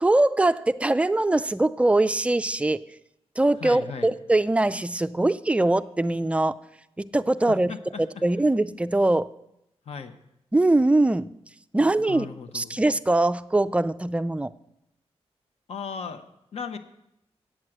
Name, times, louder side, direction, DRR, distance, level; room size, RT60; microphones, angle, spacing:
voice 1, 0.0-2.8 3.4-6.5 7.0-9.3 10.5-11.3 11.7-12.3 12.5-14.5, right 2 dB, 10° right, 12 dB, 0.3 m, -22 dB
voice 2, 3.6-4.1 7.5-8.0 9.9-10.1 12.1-12.8 15.7-16.3 16.5-16.8, left 6 dB, 65° left, 9 dB, 1.0 m, -36 dB
8.8 x 7.4 x 7.8 m, 0.83 s
wide cardioid pair, 120°, 11 cm